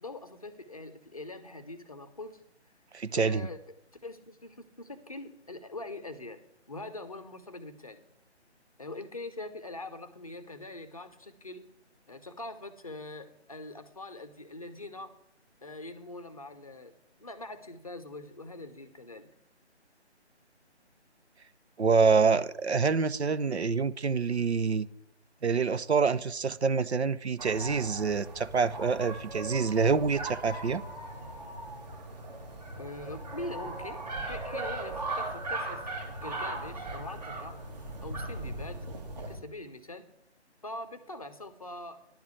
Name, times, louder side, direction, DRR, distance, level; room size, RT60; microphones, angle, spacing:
voice 1, 0.0-2.4 3.1-3.7 4.0-6.4 6.7-8.0 8.8-11.6 12.1-15.2 15.6-16.9 17.2-19.3 32.8-35.8 36.2-37.6 38.0-38.9 39.3-40.0 40.6-42.0, left 2 dB, 30° left, 0.7 m, -43 dB
voice 2, 2.9-3.5 21.8-24.9 25.4-30.8, right 5 dB, 70° right, 0.6 m, -26 dB
sound 1, 27.4-39.4, right 2 dB, 35° right, 1.9 m, -38 dB
10.5 x 4.7 x 7.9 m
figure-of-eight pair, 150°, 35 cm